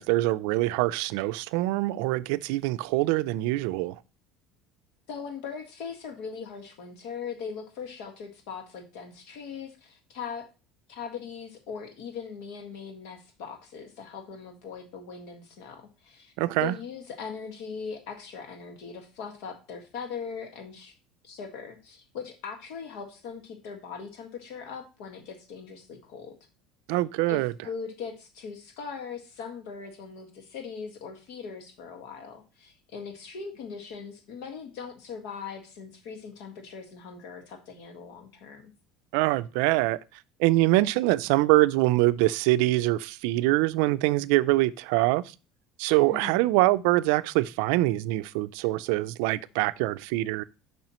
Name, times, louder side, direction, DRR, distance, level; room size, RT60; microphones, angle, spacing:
voice 1, 0.0-4.0 16.4-16.7 26.9-27.5 39.1-40.0 40.4-45.2 45.8-50.4, right 18 dB, 75° right, 0.4 m, -24 dB
voice 2, 5.1-10.5 10.9-16.3 16.6-20.9 21.2-26.4 27.3-38.7 46.0-46.4, left 6 dB, 70° left, 1.6 m, -40 dB
7.3 x 5.5 x 3.0 m
cardioid pair, 165°, 0 cm